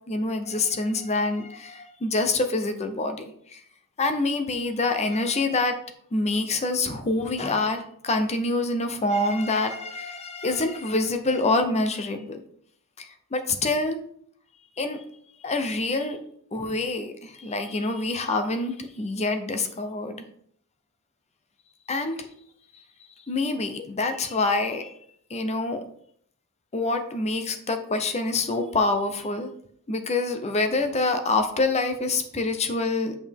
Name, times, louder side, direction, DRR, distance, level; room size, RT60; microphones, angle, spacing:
voice 1, 0.1-3.6 4.0-5.8 6.1-12.4 13.0-14.0 14.8-15.0 15.4-16.2 16.5-20.2 21.9-22.3 22.7-22.8 23.3-24.9 25.3-25.8 26.7-29.5 29.9-33.2, left 2 dB, 30° left, 8 dB, 0.7 m, -26 dB
8.6 x 5.1 x 3.6 m, 0.65 s
head